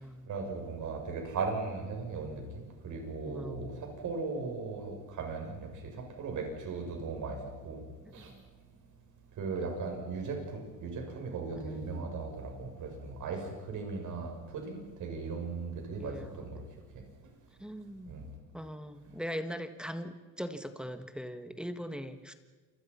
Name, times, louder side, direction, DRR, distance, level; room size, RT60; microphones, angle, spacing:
voice 1, 0.0-7.8 8.1-8.4 9.4-16.6 18.0-18.2, right 4 dB, 50° right, 2 dB, 7.9 m, -38 dB
voice 2, 3.3-3.8 8.1-8.3 11.5-12.2 16.0-16.3 17.6-18.2 18.5-22.3, equal, ahead, 8 dB, 1.6 m, -41 dB
28.5 x 22.5 x 5.8 m, 1.3 s
cardioid pair, 115°, 38 cm